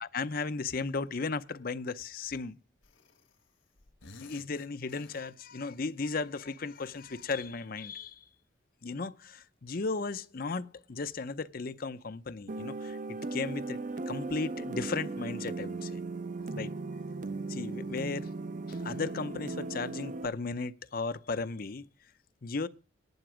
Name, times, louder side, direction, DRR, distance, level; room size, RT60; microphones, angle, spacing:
voice 1, 0.0-2.6 4.2-8.2 8.8-13.8 14.1-16.0 16.5-16.7 17.5-18.3 18.7-21.9 22.4-22.7, left 4 dB, 50° left, 0.6 m, -35 dB
sound 1, 2.8-3.5 3.8-5.7 6.7-8.2, left 3 dB, 90° left, 1.5 m, -56 dB
sound 2, 12.5-20.3, right 3 dB, 40° right, 0.5 m, -37 dB
11.0 x 10.0 x 5.0 m
head